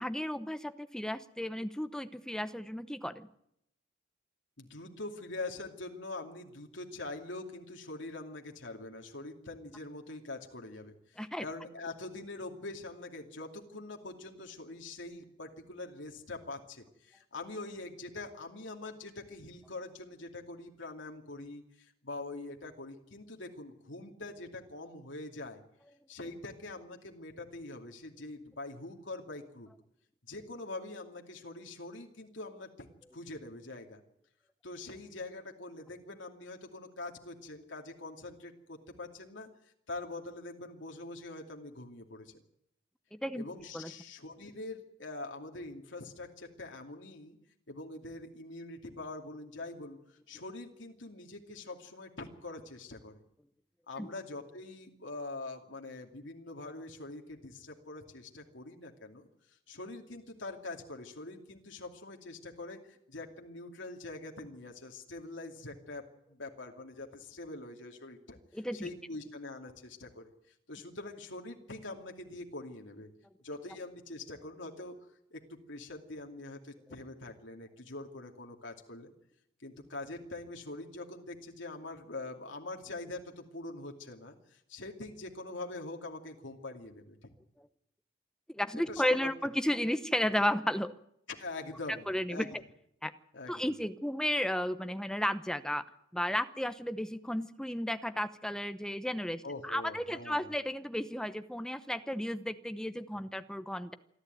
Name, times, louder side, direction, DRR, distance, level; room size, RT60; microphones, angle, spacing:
voice 1, 0.0-3.3 11.2-11.4 43.1-43.4 43.7-43.9 54.0-54.1 68.5-68.9 88.5-90.9 92.1-92.5 93.0-93.1 93.5-95.8 96.1-103.9, left 1 dB, 5° left, 11 dB, 0.9 m, -33 dB
voice 2, 4.6-25.6 26.1-29.7 30.3-32.9 33.1-34.0 34.6-42.4 43.4-47.4 47.7-53.2 53.9-66.0 66.3-68.4 68.7-70.3 70.7-73.1 73.4-75.0 75.3-75.4 75.7-79.1 79.6-87.3 88.7-89.3 91.3-92.5 93.3-93.8 99.4-100.5 103.1-103.2, left 2 dB, 75° left, 2 dB, 2.6 m, -44 dB
27.5 x 12.0 x 9.3 m, 0.77 s
head